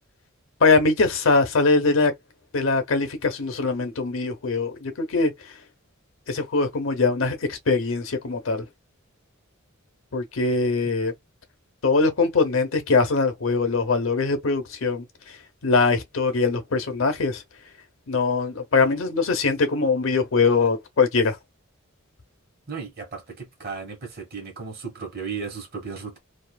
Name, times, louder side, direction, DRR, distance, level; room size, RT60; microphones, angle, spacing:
voice 1, 0.6-2.1 2.5-5.3 6.3-8.7 10.1-11.1 11.8-15.0 15.6-17.4 18.1-21.4, left 4 dB, 70° left, 0.8 m, -22 dB
voice 2, 22.7-26.2, right 5 dB, 50° right, 1.2 m, -35 dB
2.6 x 2.4 x 2.2 m
head